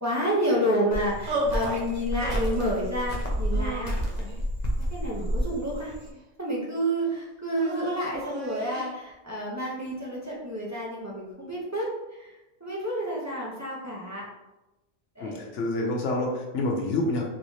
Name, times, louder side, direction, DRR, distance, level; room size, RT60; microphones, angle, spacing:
voice 1, 0.0-4.3 4.9-5.9 6.4-11.9 12.2-12.3 12.6-14.3 15.2-15.5, equal, 20° right, -6 dB, 0.5 m, -29 dB
Cricket, 0.9-6.1, equal, 45° left, 0.6 m, -30 dB
sound 1, 1.3-1.8 2.2-2.9 3.5-4.4 5.2-6.2 7.5-8.9, right 1 dB, 85° right, 1.0 m, -34 dB
voice 2, 15.2-17.2, left 2 dB, 80° left, 0 dB, 1.0 m, -27 dB
3.1 x 3.1 x 2.7 m, 0.99 s
omnidirectional pair, 1.2 m